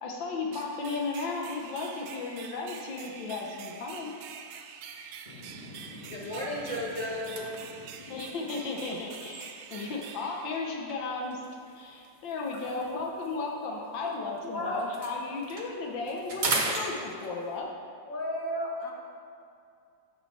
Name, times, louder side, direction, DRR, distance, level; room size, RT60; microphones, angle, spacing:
voice 1, 0.0-4.1 8.1-11.4 11.7-17.7, left 3 dB, 90° left, 0 dB, 1.6 m, -35 dB
sound 1, 0.5-11.2, right 7 dB, 80° right, 1.2 m, -46 dB
sound 2, 4.9-5.2 5.6-5.7 6.1-10.0 10.9-14.4 14.7-17.6, right 2 dB, 50° right, 0.5 m, -38 dB
voice 2, 5.2-8.2, left 1 dB, 25° left, -5 dB, 1.4 m, -37 dB
voice 3, 14.5-14.8 16.7-16.9 18.1-18.9, left 1 dB, 50° left, -2 dB, 1.5 m, -33 dB
13.5 x 4.5 x 4.1 m, 2.5 s
omnidirectional pair, 2.0 m